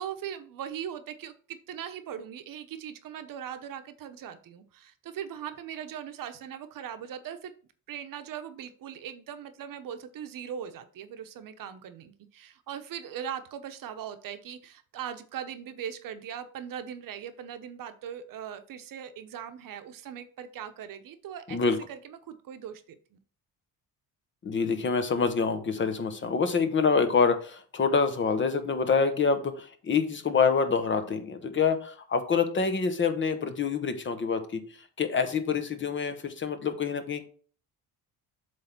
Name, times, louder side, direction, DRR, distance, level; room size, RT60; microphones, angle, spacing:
voice 1, 0.0-7.5 7.9-21.6 21.9-23.2, right 9 dB, 65° right, 9 dB, 0.9 m, -40 dB
voice 2, 24.4-34.6 35.0-37.2, left 5 dB, 30° left, 9 dB, 0.9 m, -26 dB
7.8 x 3.4 x 5.8 m, 0.43 s
cardioid pair, 155°, 36 cm